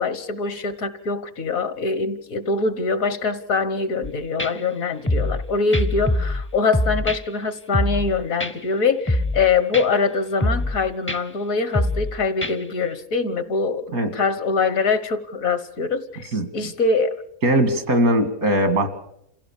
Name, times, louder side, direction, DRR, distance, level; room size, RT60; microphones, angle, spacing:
voice 1, 0.0-17.2, left 4 dB, 70° left, 13 dB, 1.7 m, -23 dB
sound 1, 4.0-4.1 4.4-4.5 5.1-5.4 5.7-6.4 6.7-7.2 7.7-8.1 8.4-8.5 9.1-9.4 9.7-9.9 10.4-10.8 11.1-11.2 11.7-12.1 12.4-12.5, left 1 dB, 15° left, 0.6 m, -23 dB
voice 2, 16.3-16.7 17.4-18.9, right 1 dB, 80° right, 9 dB, 2.5 m, -20 dB
28.0 x 16.0 x 7.3 m, 0.75 s
omnidirectional pair, 1.5 m